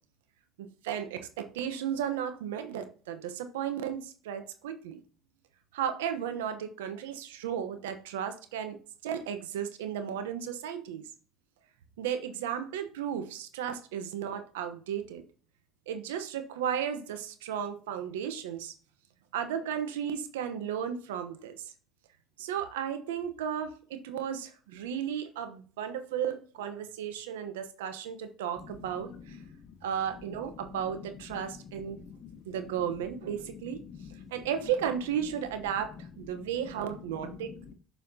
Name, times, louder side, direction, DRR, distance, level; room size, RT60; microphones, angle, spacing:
voice 1, 0.6-5.0 5.7-11.0 12.0-15.2 15.9-18.7 19.3-21.7 22.4-29.4 29.8-32.0 32.5-33.8 34.3-37.5, right 9 dB, 90° right, 9 dB, 0.9 m, -34 dB
voice 2, 32.0-32.4 33.9-34.3 37.2-37.7, left 6 dB, 55° left, 8 dB, 1.2 m, -47 dB
6.9 x 5.7 x 2.7 m, 0.40 s
hypercardioid pair, 70°, 0 cm